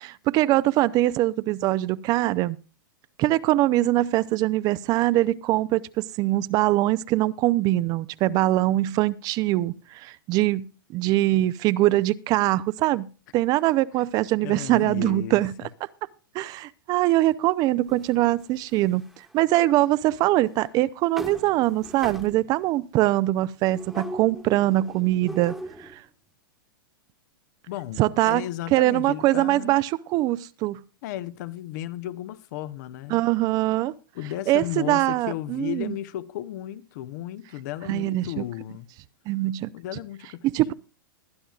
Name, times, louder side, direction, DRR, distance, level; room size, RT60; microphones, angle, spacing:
voice 1, 0.0-2.6 3.2-10.7 10.9-13.1 13.3-15.5 16.3-26.0 28.0-28.4 28.7-30.8 33.1-33.9 34.5-36.0 37.9-38.4 39.3-39.7 40.4-40.7, right 16 dB, 35° right, 0.5 m, -23 dB
voice 2, 14.4-15.4 27.7-29.8 31.0-33.2 34.1-38.9 39.7-40.7, left 13 dB, 55° left, 0.7 m, -34 dB
sound 1, 17.9-19.3 20.1-20.2 20.6-20.7 21.2-22.7 23.7-26.0, equal, ahead, 1.2 m, -40 dB
21.0 x 10.0 x 2.4 m
hypercardioid pair, 125°, 12 cm